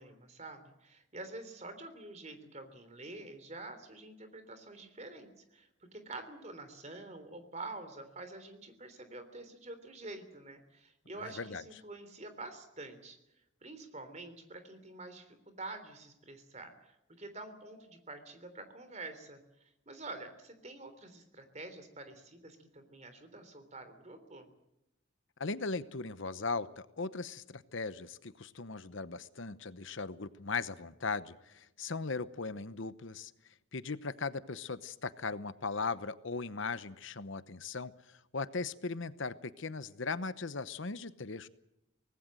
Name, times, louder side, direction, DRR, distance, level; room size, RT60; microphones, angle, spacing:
voice 1, 0.0-13.2 13.6-24.5, right 2 dB, 35° right, 9 dB, 3.5 m, -47 dB
voice 2, 25.4-33.3 33.7-41.5, left 4 dB, 65° left, 13 dB, 0.9 m, -38 dB
24.5 x 19.0 x 7.7 m, 0.87 s
head